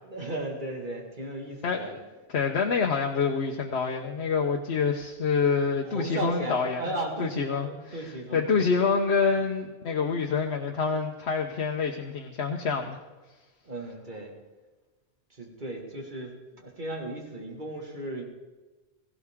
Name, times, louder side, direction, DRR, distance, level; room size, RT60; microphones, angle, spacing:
voice 1, 0.0-1.9 5.8-8.8 13.6-14.3 15.3-18.2, right 1 dB, 45° right, 0 dB, 2.2 m, -36 dB
voice 2, 1.6-2.0 2.3-6.8 7.2-13.0, left 5 dB, 80° left, 2 dB, 1.2 m, -27 dB
17.0 x 16.5 x 3.6 m, 1.2 s
omnidirectional pair, 1.1 m